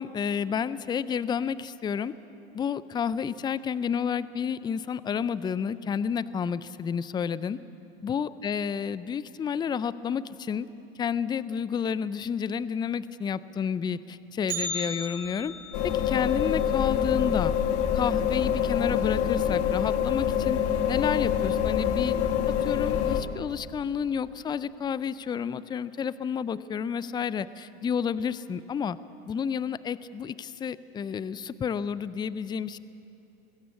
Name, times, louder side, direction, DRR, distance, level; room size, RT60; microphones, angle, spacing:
voice 1, 0.0-2.1 2.5-7.6 8.0-10.7 11.0-15.5 15.8-17.5 17.9-20.6 20.9-22.1 22.6-29.0 29.3-32.8, left 7 dB, 15° left, 17 dB, 0.4 m, -30 dB
Bell, 14.5-18.6 18.9-19.0 19.4-19.5 20.3-20.4 21.2-21.5 21.8-21.9, right 1 dB, 25° right, 5.6 m, -38 dB
sound 1, 15.7-23.2, left 9 dB, 50° left, 1.5 m, -26 dB
21.5 x 16.0 x 8.4 m, 2.9 s
hypercardioid pair, 115°, 30 cm